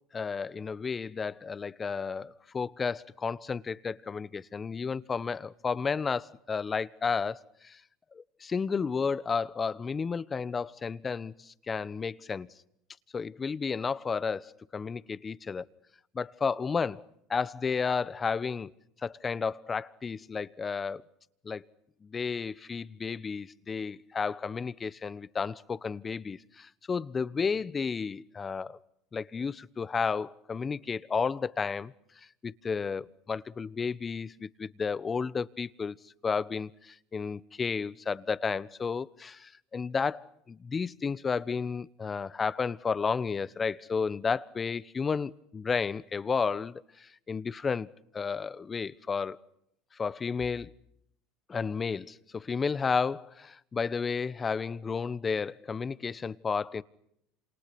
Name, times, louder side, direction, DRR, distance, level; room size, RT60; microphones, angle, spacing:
voice 1, 0.1-7.8 8.1-12.5 13.1-15.7 16.1-18.7 19.0-21.0 21.4-21.6 22.0-28.8 29.1-47.9 48.1-49.4 49.9-50.7 51.5-56.8, left 5 dB, 25° left, 1.0 m, -32 dB
27.5 x 27.5 x 6.0 m
supercardioid pair, 100°, 0 cm